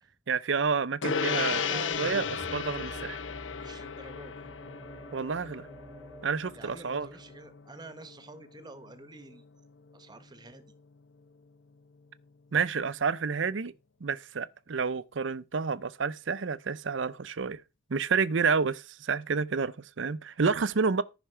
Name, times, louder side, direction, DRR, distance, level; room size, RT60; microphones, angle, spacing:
voice 1, 0.3-3.2 5.1-5.7 6.2-7.1 12.5-13.7 14.0-17.6 17.9-21.0, right 5 dB, 80° right, 0.6 m, -29 dB
Gong, 1.0-10.7, left 6 dB, 80° left, 0.7 m, -36 dB
sound 1, 1.2-7.5, equal, 5° right, 1.2 m, -49 dB
voice 2, 1.5-2.4 2.9-3.0 3.6-4.4 6.5-9.4 9.9-10.6, right 2 dB, 20° right, 1.0 m, -47 dB
14.0 x 5.9 x 4.5 m
head